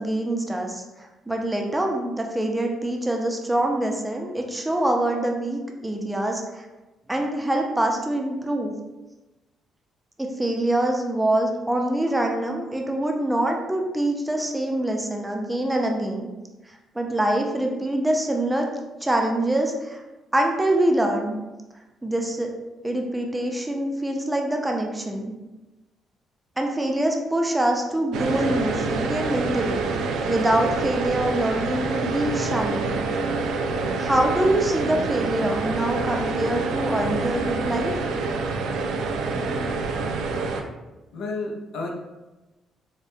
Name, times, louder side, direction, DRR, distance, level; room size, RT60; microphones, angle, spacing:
voice 1, 0.0-6.7 7.1-8.7 10.2-16.3 16.7-18.7 19.0-20.0 20.3-21.4 22.0-22.5 22.8-25.3 26.6-29.9 30.3-32.9 34.0-37.9, right 1 dB, 10° right, 2 dB, 0.5 m, -25 dB
sound 1, 28.1-40.6, right 3 dB, 90° right, 0.4 m, -27 dB
voice 2, 41.1-41.9, left 3 dB, 80° left, 1 dB, 0.6 m, -31 dB
4.9 x 2.1 x 2.6 m, 1.1 s
cardioid pair, 120°, 0 cm